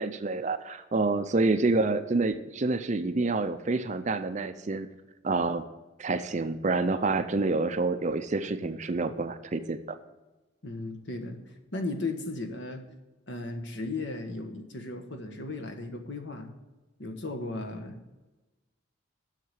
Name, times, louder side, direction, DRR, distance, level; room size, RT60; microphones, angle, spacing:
voice 1, 0.0-4.9 5.2-5.6 6.0-10.0, right 3 dB, 35° right, 10 dB, 0.5 m, -28 dB
voice 2, 10.6-12.8 13.3-16.5 17.0-18.0, left 2 dB, 55° left, 5 dB, 1.3 m, -36 dB
7.7 x 6.6 x 8.2 m, 1.1 s
head